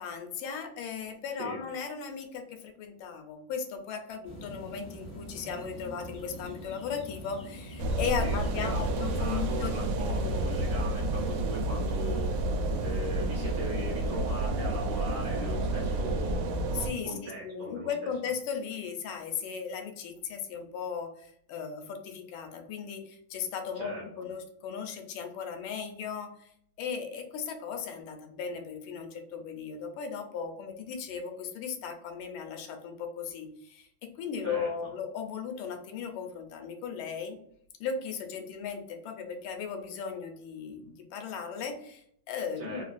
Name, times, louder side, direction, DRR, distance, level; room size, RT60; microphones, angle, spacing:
voice 1, 0.0-9.7 10.0-10.4 16.7-23.9 24.2-26.5 26.8-37.4 37.8-42.8, left 6 dB, 80° left, 5 dB, 1.4 m, -37 dB
sound 1, 4.2-14.1, equal, 40° left, 0.7 m, -44 dB
sound 2, 7.8-16.9, right 1 dB, 90° right, 1.5 m, -30 dB
voice 2, 8.2-12.5 12.8-16.7 17.0-17.9 23.7-24.2 34.4-34.9 42.6-42.8, right 2 dB, 70° right, -3 dB, 1.0 m, -39 dB
3.6 x 2.2 x 2.5 m, 0.68 s
omnidirectional pair, 2.3 m